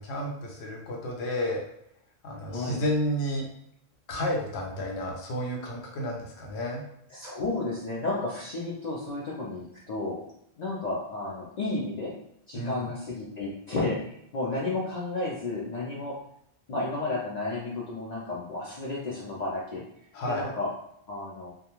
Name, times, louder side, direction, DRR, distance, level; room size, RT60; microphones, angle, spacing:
voice 1, 0.0-1.6 2.2-3.5 4.1-6.8 12.5-12.8 20.1-20.5, equal, 85° left, 0 dB, 0.9 m, -31 dB
voice 2, 2.5-2.8 7.1-10.2 10.6-12.1 12.5-16.1 16.7-19.8 20.3-20.7 21.1-21.5, left 2 dB, 55° left, -5 dB, 0.5 m, -32 dB
2.3 x 2.3 x 2.9 m, 0.73 s
omnidirectional pair, 1.0 m